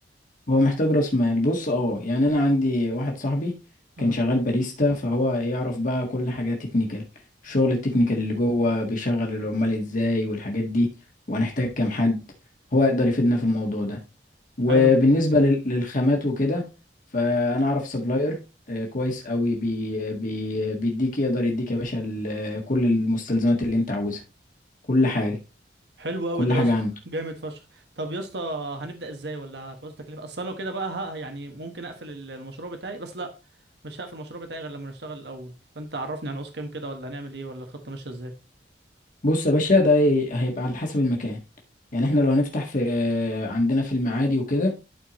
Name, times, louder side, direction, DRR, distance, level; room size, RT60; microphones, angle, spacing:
voice 1, 0.5-3.5 4.0-7.0 7.4-10.9 11.3-12.2 12.7-14.0 14.6-16.6 17.1-18.4 18.7-24.2 24.9-25.4 26.4-26.9 39.2-41.4 41.9-44.7, left 2 dB, 50° left, 1.6 m, -23 dB
voice 2, 26.0-26.7 27.0-33.3 33.8-38.3, right 2 dB, 70° right, 1.3 m, -34 dB
12.0 x 4.5 x 3.0 m
head